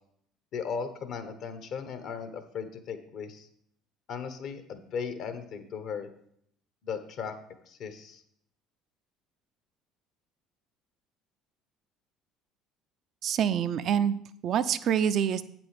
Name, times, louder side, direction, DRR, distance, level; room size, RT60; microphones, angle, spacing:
voice 1, 0.5-3.5 4.1-6.1 6.8-7.3 7.7-8.2, left 6 dB, 60° left, 9 dB, 1.1 m, -37 dB
voice 2, 13.2-15.5, right 8 dB, 55° right, 13 dB, 0.5 m, -26 dB
8.5 x 6.1 x 4.9 m, 0.69 s
hypercardioid pair, 65°, 0 cm